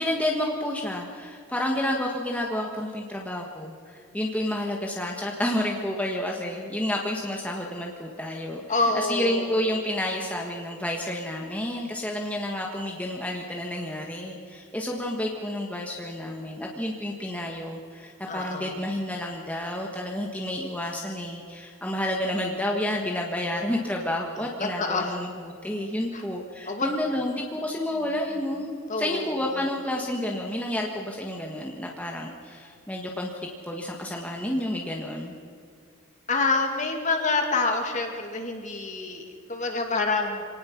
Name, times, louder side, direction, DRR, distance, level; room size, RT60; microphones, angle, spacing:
voice 1, 0.0-33.3 33.7-35.3, left 1 dB, 5° left, -1 dB, 1.5 m, -30 dB
voice 2, 8.7-9.6 18.3-18.8 24.6-25.2 26.1-26.2 26.7-26.9 28.9-29.5 36.3-40.5, left 3 dB, 35° left, 3 dB, 2.5 m, -27 dB
26.0 x 18.5 x 6.0 m, 2.3 s
head